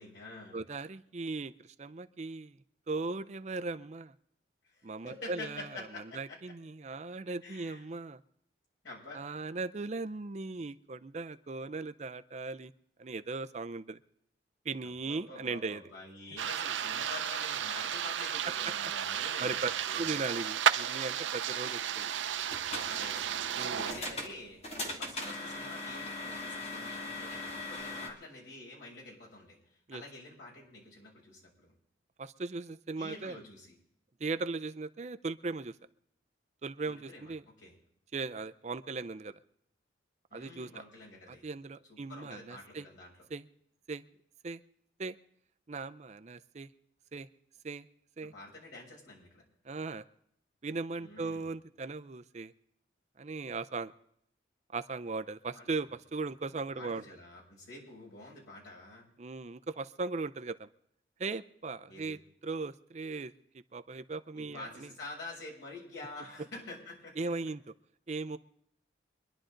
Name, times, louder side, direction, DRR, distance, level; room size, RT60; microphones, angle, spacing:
voice 1, 0.0-0.6 4.6-6.4 7.4-7.8 8.8-9.2 14.8-20.2 22.8-23.4 23.8-31.7 33.0-33.7 36.9-37.3 37.6-37.7 40.3-41.4 41.9-43.1 48.2-49.4 51.0-51.5 55.5-55.7 56.5-59.1 61.9-62.2 64.4-67.5, left 2 dB, 75° left, -4 dB, 7.2 m, -48 dB
voice 2, 0.5-2.6 2.9-4.1 4.8-5.9 6.1-8.2 9.1-12.7 13.0-14.0 14.6-15.8 19.4-22.1 23.6-23.9 29.9-30.0 32.2-33.4 34.2-35.8 36.6-37.4 38.1-39.4 40.3-40.8 41.3-42.9 43.3-43.4 43.9-44.0 44.4-44.6 45.0-45.2 45.7-46.7 47.1-47.3 47.6-47.9 48.2-48.3 49.6-50.0 50.6-52.5 53.2-53.9 54.7-57.0 59.2-60.7 61.2-62.2 62.4-63.3 63.7-64.9 67.2-67.6 68.1-68.4, right 3 dB, 35° right, 11 dB, 0.5 m, -38 dB
sound 1, 16.4-23.9, right 9 dB, 80° right, 0.6 m, -33 dB
sound 2, 22.3-28.1, left 2 dB, 35° left, 2.3 m, -40 dB
24.5 x 11.0 x 3.9 m, 0.71 s
head